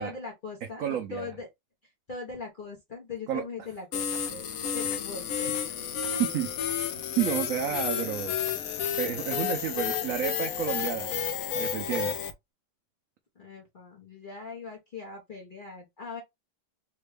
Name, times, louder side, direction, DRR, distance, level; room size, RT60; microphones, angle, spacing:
voice 1, 0.0-1.5 1.8-5.9 6.1-6.2 13.3-16.2, left 4 dB, 45° left, 0.6 m, -41 dB
voice 2, 0.8-1.3 3.3-3.4 6.2-6.5 7.2-8.4 9.0-11.2 11.5-12.2, right 10 dB, 85° right, 0.7 m, -30 dB
sound 1, 3.9-12.3, left 8 dB, 70° left, 0.8 m, -31 dB
3.5 x 2.2 x 3.2 m
omnidirectional pair, 2.0 m